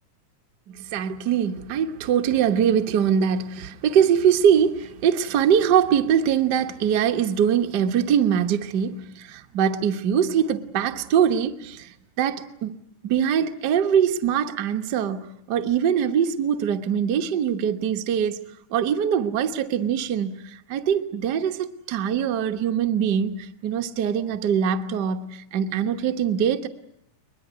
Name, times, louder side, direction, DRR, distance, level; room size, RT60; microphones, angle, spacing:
voice 1, 0.7-12.8 13.0-18.4 18.7-26.7, right 8 dB, 85° right, 0.9 m, -23 dB
22.0 x 22.0 x 9.2 m
omnidirectional pair, 3.8 m